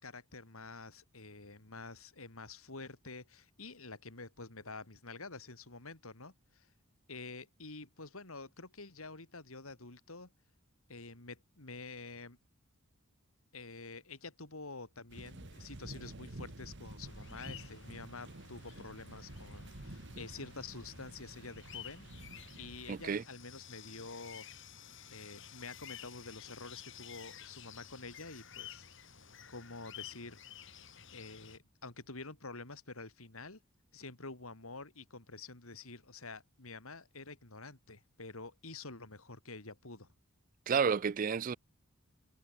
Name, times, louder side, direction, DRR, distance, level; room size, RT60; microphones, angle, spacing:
voice 1, 0.0-6.7 7.1-10.3 10.9-12.4 13.5-22.3 22.6-24.5 25.1-29.0 29.5-30.4 31.1-33.6 33.9-40.1, left 3 dB, 80° left, 3.6 m, -48 dB
sound 1, 15.1-23.2, right 1 dB, 55° right, 1.7 m, -50 dB
sound 2, 17.0-31.6, left 9 dB, 60° left, 6.1 m, -52 dB
voice 2, 22.9-23.2 40.7-41.6, right 6 dB, 40° right, 0.4 m, -30 dB
head